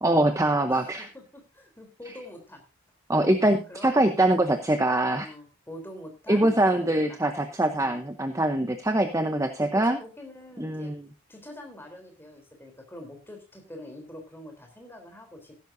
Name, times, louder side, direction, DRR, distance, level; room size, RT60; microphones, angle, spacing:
voice 1, 0.0-1.1 2.1-2.2 3.1-5.3 6.3-10.0 10.6-11.1, right 1 dB, 15° right, 7 dB, 0.8 m, -23 dB
voice 2, 0.7-2.6 3.7-4.0 4.4-4.6 5.2-7.2 7.8-8.0 9.3-9.7 10.0-10.9 11.3-15.5, left 1 dB, 10° left, 3 dB, 3.5 m, -45 dB
15.5 x 12.0 x 2.7 m, 0.29 s
head